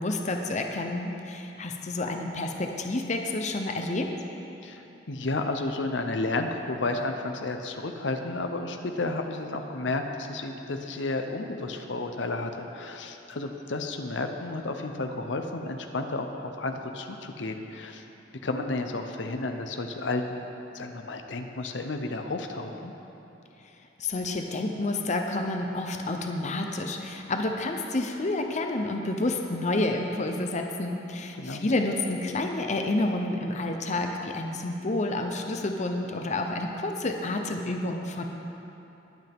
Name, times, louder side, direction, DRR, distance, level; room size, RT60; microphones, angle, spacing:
voice 1, 0.0-4.1 24.0-38.3, left 2 dB, 40° left, 3 dB, 0.7 m, -29 dB
voice 2, 5.1-18.0 18.4-20.5 20.7-22.9 31.3-31.7, left 2 dB, 75° left, 5 dB, 0.8 m, -32 dB
21.0 x 8.2 x 3.6 m, 3.0 s
head